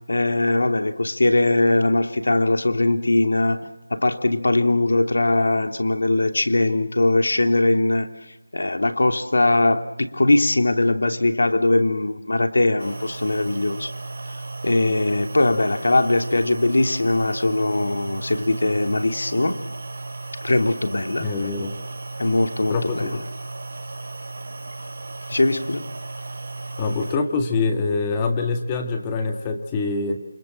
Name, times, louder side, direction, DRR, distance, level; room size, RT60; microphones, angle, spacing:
voice 1, 0.1-3.6 3.9-8.1 8.5-13.9 14.6-19.6 20.4-21.3 22.2-23.1 25.3-25.9, left 2 dB, 70° left, 7 dB, 3.0 m, -20 dB
sound 1, 12.8-27.2, right 2 dB, 40° right, 3.9 m, -35 dB
voice 2, 21.2-21.8 22.7-23.2 26.8-30.2, left 4 dB, 15° left, 5 dB, 1.8 m, -24 dB
29.0 x 26.5 x 7.6 m, 0.90 s
figure-of-eight pair, 170°, 0 cm